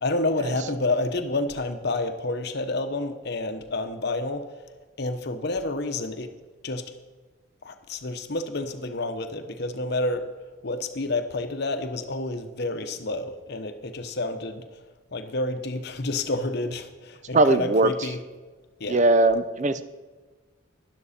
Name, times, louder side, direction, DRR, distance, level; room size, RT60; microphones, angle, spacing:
voice 1, 0.0-4.5 5.0-6.3 6.6-6.8 7.6-10.3 10.6-14.7 15.1-18.2 18.8-19.0, left 2 dB, 55° left, 8 dB, 0.9 m, -29 dB
voice 2, 17.3-17.9 18.9-19.8, right 2 dB, 35° right, 13 dB, 0.5 m, -20 dB
12.0 x 11.5 x 4.3 m, 1.3 s
head